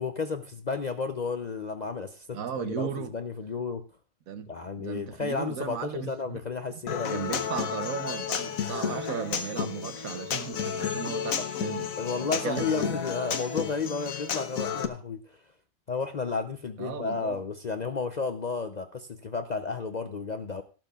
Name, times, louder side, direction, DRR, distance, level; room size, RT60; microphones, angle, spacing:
voice 1, 0.0-3.9 4.5-7.5 11.3-11.5 12.0-15.4 15.9-20.6, left 4 dB, 50° left, 0.5 m, -32 dB
voice 2, 2.3-3.1 4.3-4.5 4.8-6.4 6.7-11.9 12.2-13.0 16.8-17.4, right 7 dB, 80° right, 1.4 m, -36 dB
Human voice / Acoustic guitar, 6.9-14.9, left 7 dB, 75° left, 1.4 m, -32 dB
17.5 x 12.0 x 2.4 m
omnidirectional pair, 1.4 m